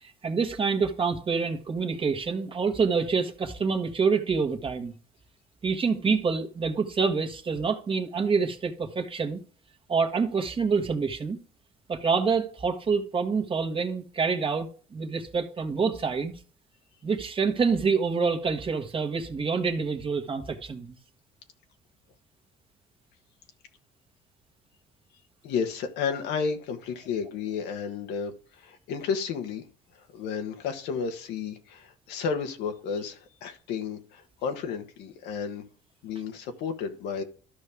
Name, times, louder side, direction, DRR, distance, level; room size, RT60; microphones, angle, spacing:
voice 1, 0.0-5.0 5.6-9.4 9.9-11.4 11.9-16.3 17.0-20.9, right 5 dB, 30° right, 1.4 m, -27 dB
voice 2, 25.4-29.7 29.9-35.7 36.0-37.2, left 6 dB, 90° left, 1.4 m, -32 dB
13.0 x 5.5 x 3.6 m
cardioid pair, 110°, 17 cm